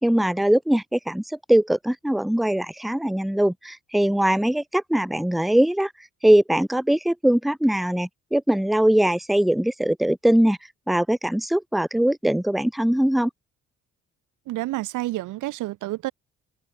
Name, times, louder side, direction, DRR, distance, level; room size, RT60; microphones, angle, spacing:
voice 1, 0.0-1.2 1.5-5.9 6.2-10.6 10.9-13.3, right 1 dB, ahead, 0.8 m, -21 dB
voice 2, 14.5-16.1, right 17 dB, 90° right, 1.1 m, -29 dB
cardioid pair, 90°, 30 cm